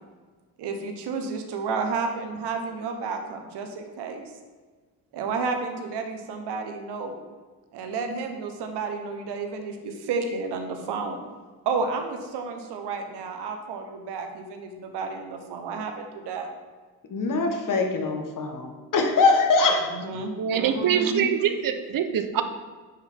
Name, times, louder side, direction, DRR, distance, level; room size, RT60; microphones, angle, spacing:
voice 1, 0.6-4.2 5.1-7.2 7.7-11.2 11.6-16.5 19.9-21.3, right 4 dB, 75° right, 5 dB, 1.1 m, -31 dB
voice 2, 17.1-20.2, left 3 dB, 50° left, 4 dB, 1.3 m, -23 dB
voice 3, 20.4-22.4, right 8 dB, 55° right, 8 dB, 0.8 m, -24 dB
9.8 x 4.5 x 3.6 m, 1.4 s
supercardioid pair, 65°, 41 cm